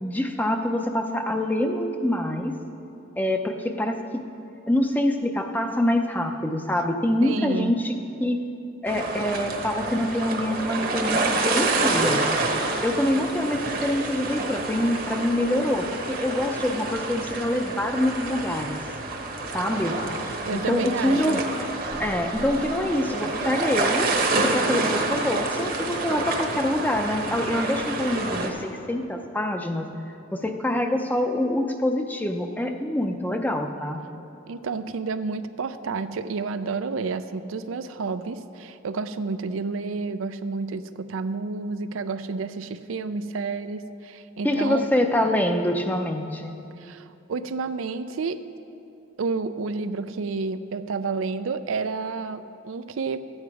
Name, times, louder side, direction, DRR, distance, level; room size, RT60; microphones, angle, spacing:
voice 1, 0.0-2.5 3.2-4.0 4.7-7.9 8.2-8.4 8.8-12.2 12.8-18.8 19.5-20.0 20.5-21.7 22.0-24.1 24.4-29.9 30.3-34.0 44.4-46.6, left 1 dB, 10° left, 5 dB, 0.5 m, -25 dB
voice 2, 7.2-7.7 20.5-21.5 34.5-44.9 46.8-48.4 49.2-53.2, right 4 dB, 80° right, 11 dB, 0.4 m, -30 dB
sound 1, 8.9-28.5, right 2 dB, 45° right, 1.0 m, -28 dB
sound 2, 21.9-24.3, equal, 65° left, 0.9 m, -45 dB
13.0 x 8.8 x 4.7 m, 2.8 s
head